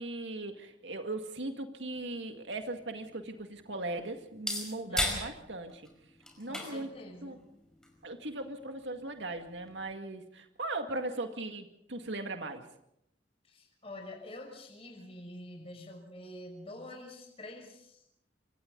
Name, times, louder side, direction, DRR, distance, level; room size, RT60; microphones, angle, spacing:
voice 1, 0.0-5.9 6.4-6.9 7.2-7.4 8.0-12.6, right 2 dB, 80° right, 5 dB, 2.1 m, -38 dB
sound 1, 1.9-9.9, left 1 dB, 5° left, 5.0 m, -41 dB
voice 2, 4.9-5.3 6.5-7.4 13.5-18.0, left 1 dB, 35° left, 2 dB, 5.6 m, -47 dB
27.5 x 25.5 x 4.0 m, 0.75 s
head